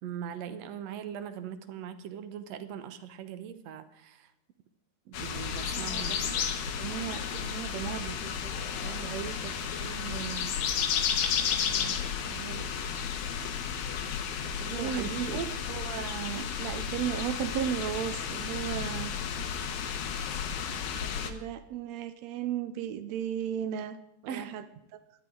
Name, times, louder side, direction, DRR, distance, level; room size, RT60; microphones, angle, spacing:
voice 1, 0.0-4.3 5.1-6.5 14.6-15.5 24.3-24.5, right 9 dB, 65° right, 11 dB, 1.8 m, -40 dB
sound 1, 5.1-21.3, left 7 dB, 85° left, 3.1 m, -33 dB
voice 2, 5.7-10.5 11.7-12.7 14.4-15.4 15.7-19.1 20.9-24.0 24.2-24.6 24.9-25.0, right 10 dB, 80° right, 10 dB, 1.5 m, -36 dB
19.5 x 12.5 x 3.9 m, 0.82 s
omnidirectional pair, 4.0 m